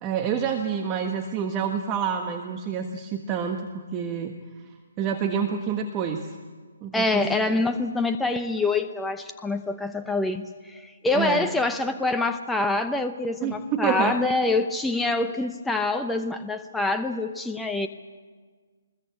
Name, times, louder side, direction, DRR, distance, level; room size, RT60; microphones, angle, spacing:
voice 1, 0.0-4.4 5.0-6.4 6.8-7.6 11.1-11.5 13.4-14.2, right 7 dB, 25° right, 4 dB, 1.4 m, -28 dB
voice 2, 6.9-17.9, left 3 dB, 5° left, 6 dB, 0.8 m, -26 dB
23.0 x 21.0 x 8.3 m, 1.5 s
figure-of-eight pair, 140°, 0 cm